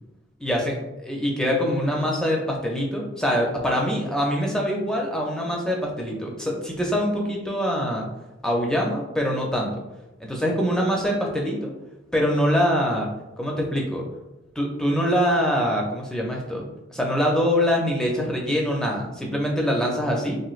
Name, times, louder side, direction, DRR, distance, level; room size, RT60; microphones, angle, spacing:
voice 1, 0.4-0.8 1.1-8.1 8.4-9.7 10.2-11.7 12.1-13.1 13.4-14.1 14.6-20.4, equal, 5° left, -1 dB, 0.4 m, -24 dB
3.0 x 2.9 x 2.4 m, 0.98 s
head